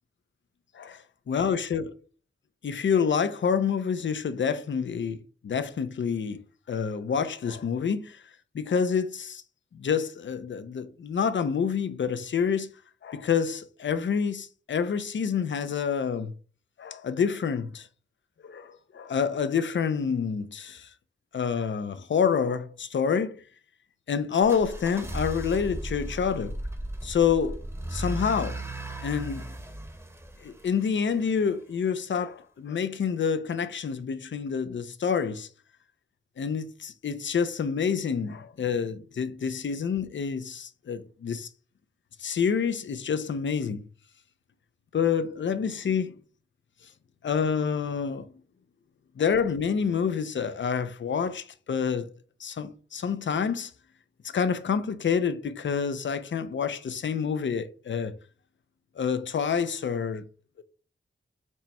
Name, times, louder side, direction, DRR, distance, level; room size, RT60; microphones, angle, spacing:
voice 1, 1.3-1.9 2.6-8.2 8.5-9.4 9.7-12.7 13.0-16.3 16.8-17.9 18.4-20.9 21.3-23.4 24.1-26.6 27.0-27.6 27.9-28.6 29.0-29.5 30.4-35.5 36.4-41.5 42.2-43.9 44.9-46.1 47.2-48.2 49.2-52.1 52.4-53.7 54.2-58.1 59.0-60.3, left 6 dB, 70° left, 0.4 m, -28 dB
sound 1, 24.4-31.3, right 1 dB, 15° right, 0.8 m, -36 dB
4.4 x 2.2 x 4.2 m
wide cardioid pair, 65°, 20 cm